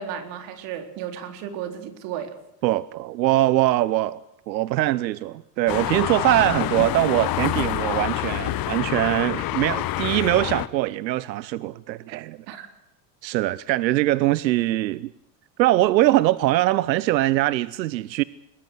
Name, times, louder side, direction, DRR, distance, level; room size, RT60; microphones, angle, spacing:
voice 1, 0.0-2.3 12.5-12.7, right 8 dB, 60° right, 4.0 m, -34 dB
voice 2, 2.6-4.2 4.5-12.4 13.2-15.1 15.6-18.2, right 16 dB, 90° right, 0.8 m, -22 dB
sound 1, 5.7-10.7, left 14 dB, 45° left, 1.3 m, -27 dB
23.0 x 19.5 x 8.1 m
supercardioid pair, 105°, 50 cm